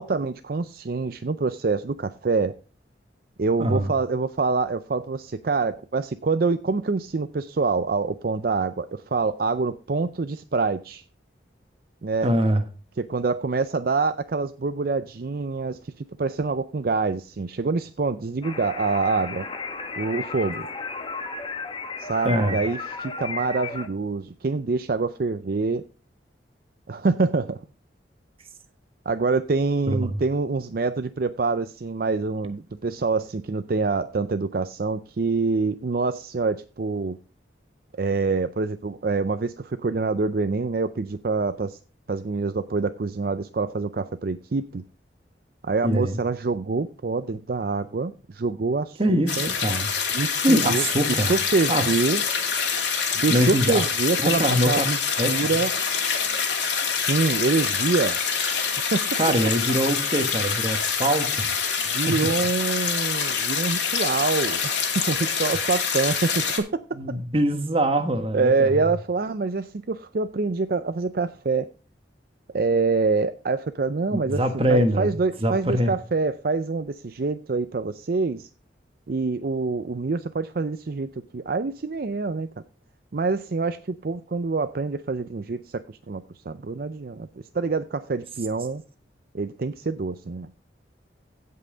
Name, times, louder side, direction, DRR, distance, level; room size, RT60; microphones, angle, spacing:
voice 1, 0.0-2.6 3.4-11.0 12.0-12.3 13.0-19.5 20.0-20.7 22.0-25.9 26.9-27.6 29.1-37.2 38.0-41.8 42.1-44.8 45.6-49.5 50.1-52.2 53.1-55.7 56.8-58.2 58.9-59.2 61.8-67.2 68.3-71.7 72.5-74.4 74.7-78.5 79.1-82.5 83.1-88.8 89.3-90.5, right 4 dB, 55° right, 11 dB, 0.5 m, -26 dB
voice 2, 3.6-3.9 12.2-12.6 22.2-22.6 29.9-30.2 45.8-46.2 49.0-49.9 50.4-51.3 51.7-51.9 53.3-53.9 54.2-54.9 55.2-55.3 59.2-61.5 62.1-62.2 66.9-68.7 74.1-75.1 75.4-75.9, right 1 dB, 30° right, 7 dB, 1.3 m, -23 dB
sound 1, 18.4-23.9, left 4 dB, 30° left, 1.0 m, -34 dB
sound 2, 49.3-66.6, left 6 dB, 75° left, 2.6 m, -26 dB
16.0 x 5.6 x 3.9 m, 0.36 s
head